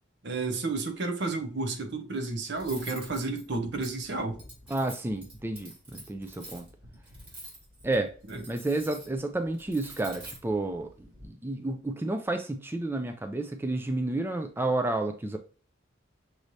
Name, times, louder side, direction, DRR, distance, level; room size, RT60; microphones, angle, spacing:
voice 1, 0.2-4.4 8.3-8.4, right 3 dB, 65° right, 0.9 m, -31 dB
Cutlery silverware, 2.5-11.3, right 2 dB, 30° right, 2.3 m, -48 dB
voice 2, 4.7-6.7 7.8-8.1 8.5-15.4, right 2 dB, 10° right, 0.4 m, -31 dB
6.1 x 3.2 x 2.6 m
head